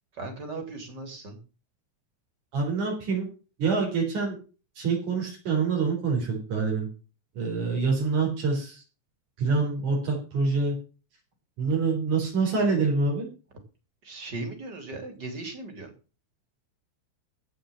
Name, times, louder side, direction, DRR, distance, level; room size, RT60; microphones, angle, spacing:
voice 1, 0.1-1.4 14.0-15.9, right 2 dB, 35° right, 5 dB, 3.6 m, -37 dB
voice 2, 2.5-3.3 3.6-4.4 4.8-6.9 7.3-8.8 9.4-10.8 11.6-13.3, right 4 dB, 85° right, -1 dB, 5.7 m, -26 dB
15.5 x 5.7 x 7.7 m, 0.35 s
omnidirectional pair, 3.4 m